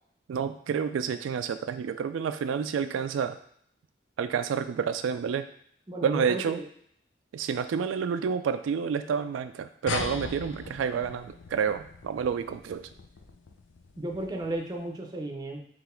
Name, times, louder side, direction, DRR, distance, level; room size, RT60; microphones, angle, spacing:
voice 1, 0.3-3.4 4.2-5.5 6.0-6.6 7.3-12.9, right 7 dB, 90° right, 9 dB, 0.3 m, -29 dB
voice 2, 5.9-6.6 14.0-15.6, right 1 dB, 20° right, 1 dB, 0.6 m, -34 dB
sound 1, 9.9-14.7, left 4 dB, 80° left, 0.5 m, -39 dB
3.9 x 3.1 x 4.4 m, 0.67 s
head